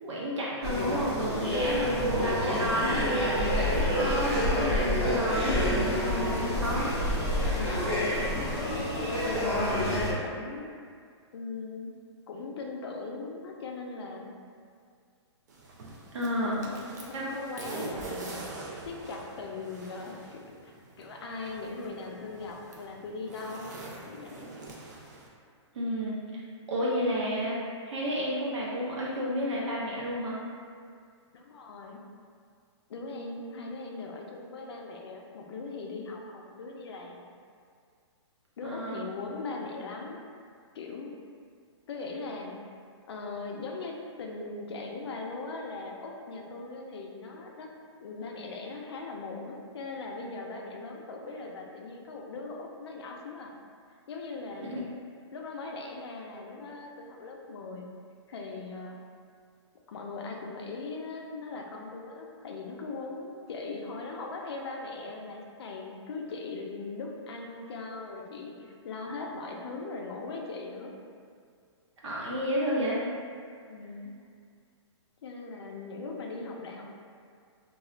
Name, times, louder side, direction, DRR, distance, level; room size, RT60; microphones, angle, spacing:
voice 1, 0.0-6.9 16.1-16.6 17.1-17.3 25.7-26.4 26.7-30.4 38.6-39.1 54.6-54.8 72.0-73.0, equal, 75° right, -5 dB, 0.8 m, -31 dB
sound 1, 0.6-10.1, left 1 dB, 15° left, 0.9 m, -28 dB
voice 2, 1.6-2.3 7.5-8.7 9.0-10.7 11.3-11.9 12.3-14.3 16.4-18.5 18.8-24.5 31.3-32.0 32.9-37.3 38.6-40.2 40.7-41.1 41.9-42.6 43.1-47.7 48.0-53.5 54.1-54.8 55.3-57.9 58.3-59.0 59.9-70.9 73.7-74.1 75.2-76.8, left 3 dB, 60° left, 0 dB, 0.4 m, -40 dB
sound 2, 15.5-25.3, right 3 dB, 35° right, 0.3 m, -44 dB
2.3 x 2.0 x 3.7 m, 2.1 s
hypercardioid pair, 175°, 15 cm